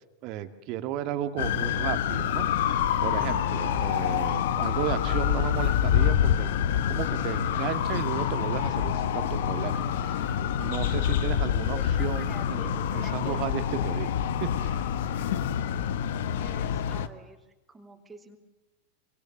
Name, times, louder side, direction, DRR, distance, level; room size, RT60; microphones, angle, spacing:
voice 1, 0.2-6.5 6.9-14.1 14.4-15.0, right 11 dB, 40° right, 9 dB, 2.0 m, -34 dB
sound 1, 1.4-17.1, left 9 dB, 55° left, 1.2 m, -27 dB
Telephone, 5.1-8.4 9.7-11.2 11.7-13.4, left 5 dB, 20° left, 2.3 m, -46 dB
voice 2, 15.7-17.4 17.7-18.4, right 3 dB, 15° right, 3 dB, 3.3 m, -51 dB
26.0 x 25.0 x 7.2 m, 1.1 s
figure-of-eight pair, 90°, 0 cm